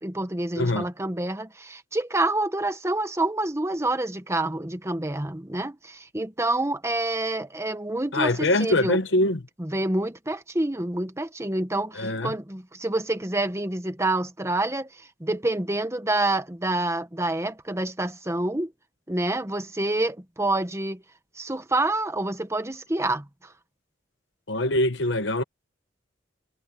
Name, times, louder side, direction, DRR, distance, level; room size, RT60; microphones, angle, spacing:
voice 1, 0.0-9.0 9.6-18.7 19.1-21.0 21.4-23.5, right 2 dB, 15° right, 1.3 m, -27 dB
voice 2, 0.6-0.9 8.1-9.4 12.0-12.3 24.5-25.4, left 1 dB, 70° left, 1.1 m, -23 dB
head